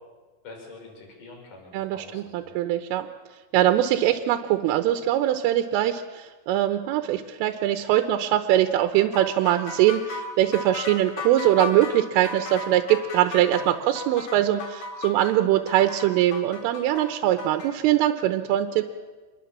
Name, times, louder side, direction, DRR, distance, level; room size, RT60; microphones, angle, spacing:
voice 1, 0.4-2.5 13.6-13.7, left 3 dB, 40° left, 2 dB, 6.4 m, -45 dB
voice 2, 1.7-3.1 3.5-18.9, right 12 dB, 90° right, 8 dB, 3.5 m, -22 dB
sound 1, 9.1-17.7, left 3 dB, 70° left, 6.1 m, -35 dB
27.0 x 22.5 x 7.4 m, 1.3 s
omnidirectional pair, 5.7 m